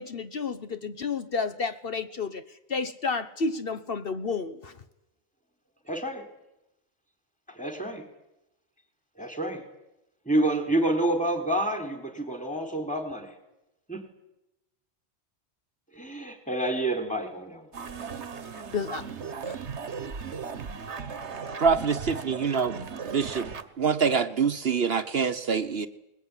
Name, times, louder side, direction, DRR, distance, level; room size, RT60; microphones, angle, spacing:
voice 1, 0.0-2.4 2.7-4.7 18.5-19.0 19.4-19.6, left 4 dB, 60° left, 10 dB, 1.2 m, -31 dB
voice 2, 5.9-6.2 7.5-8.0 9.2-9.6 10.3-13.3 13.9-14.0 15.9-17.7, right 1 dB, 5° left, 6 dB, 3.9 m, -28 dB
sound 1, 17.7-23.6, right 5 dB, 85° right, 1.6 m, -37 dB
voice 3, 21.6-23.5 23.8-25.9, right 6 dB, 65° right, 10 dB, 1.3 m, -25 dB
21.5 x 21.0 x 9.9 m, 0.91 s
omnidirectional pair, 1.1 m